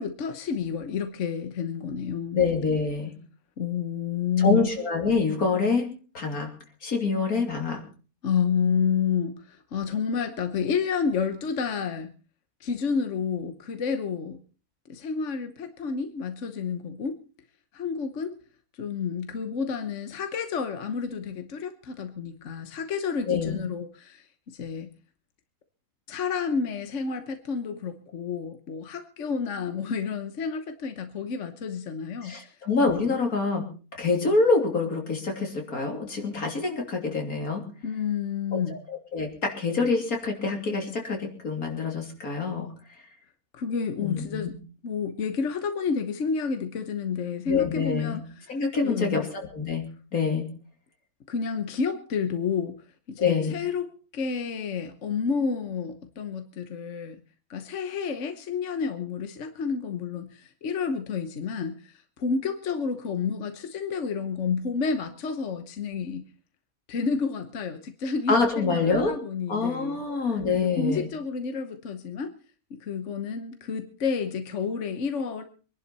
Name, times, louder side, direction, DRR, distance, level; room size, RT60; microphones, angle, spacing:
voice 1, 0.0-2.4 3.6-4.7 8.2-12.1 12.6-14.4 14.9-17.2 17.7-18.4 18.8-24.9 26.1-32.5 37.8-38.8 43.5-44.6 44.8-49.2 51.3-52.8 53.1-57.2 57.5-66.2 66.9-70.0 70.5-72.3 72.7-75.4, left 6 dB, 60° left, 8 dB, 1.4 m, -30 dB
voice 2, 2.3-3.1 4.4-5.9 6.1-6.5 6.8-7.8 23.3-23.7 32.2-33.6 34.0-37.6 38.5-38.8 39.1-42.7 44.0-44.5 47.5-48.2 48.5-49.8 50.1-50.5 53.2-53.6 68.3-69.1 69.5-71.1, left 4 dB, 80° left, 2 dB, 3.5 m, -26 dB
24.5 x 11.0 x 4.2 m, 0.38 s
omnidirectional pair, 1.5 m